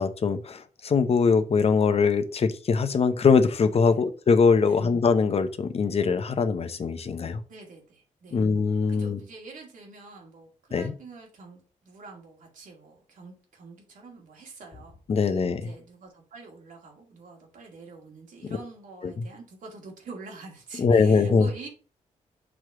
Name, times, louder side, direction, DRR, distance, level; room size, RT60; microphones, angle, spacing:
voice 1, 0.0-7.4 8.3-9.2 10.7-10.9 15.1-15.7 19.0-19.2 20.8-21.5, left 5 dB, 50° left, 10 dB, 0.7 m, -22 dB
voice 2, 7.5-8.4 8.9-15.0 15.5-21.7, right 3 dB, 80° right, 1 dB, 2.1 m, -46 dB
6.2 x 3.1 x 4.8 m, 0.37 s
cardioid pair, 100°, 13 cm